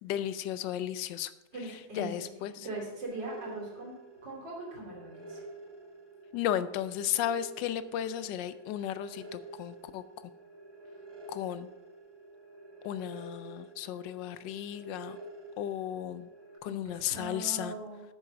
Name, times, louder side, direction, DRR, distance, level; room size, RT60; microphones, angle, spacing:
voice 1, 0.0-1.3 2.0-2.7 6.3-10.0 11.3-11.7 12.8-15.2 15.6-16.3 16.6-17.7, left 11 dB, 75° left, 14 dB, 1.2 m, -34 dB
voice 2, 1.5-5.4 16.6-18.0, right 2 dB, 65° right, -3 dB, 3.6 m, -41 dB
sound 1, 3.0-16.6, right 2 dB, 15° right, 0.9 m, -49 dB
8.8 x 6.8 x 5.8 m, 1.1 s
omnidirectional pair, 2.1 m